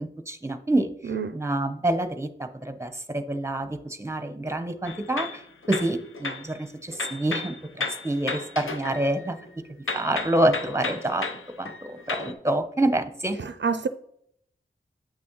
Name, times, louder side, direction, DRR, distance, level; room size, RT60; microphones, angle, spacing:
voice 1, 0.0-2.3 2.6-9.4 9.9-11.3 11.6-13.4, right 1 dB, 15° right, 0.7 m, -27 dB
sound 1, 4.9-6.5 6.9-9.5 9.9-12.3, left 3 dB, 75° left, 0.8 m, -34 dB
voice 2, 13.4-13.9, right 5 dB, 60° right, 0.4 m, -27 dB
8.4 x 6.1 x 3.0 m
wide cardioid pair, 55°, 21 cm